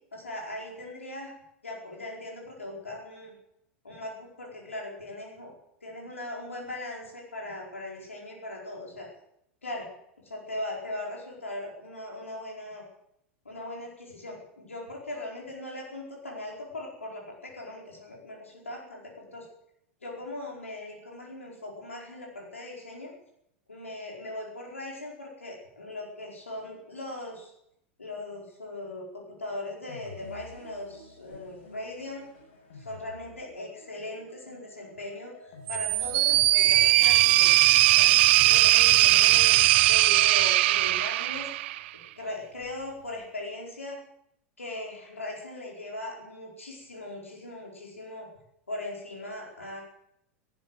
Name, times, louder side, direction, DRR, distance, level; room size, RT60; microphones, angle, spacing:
voice 1, 0.1-1.3 1.6-3.3 3.8-5.5 5.8-9.1 9.6-9.9 10.2-12.8 13.4-19.5 20.0-23.1 23.7-27.5 28.0-32.3 32.7-37.6 37.9-38.1 38.4-39.5 39.8-41.5 42.2-44.0 44.6-48.3 48.7-49.8, left 1 dB, 90° left, -1 dB, 4.8 m, -39 dB
sound 1, 29.9-41.2, left 2 dB, 65° left, 6.9 m, -50 dB
sound 2, 35.7-41.9, right 16 dB, 60° right, 0.7 m, -20 dB
14.5 x 12.0 x 7.9 m, 0.76 s
hypercardioid pair, 95°, 7 cm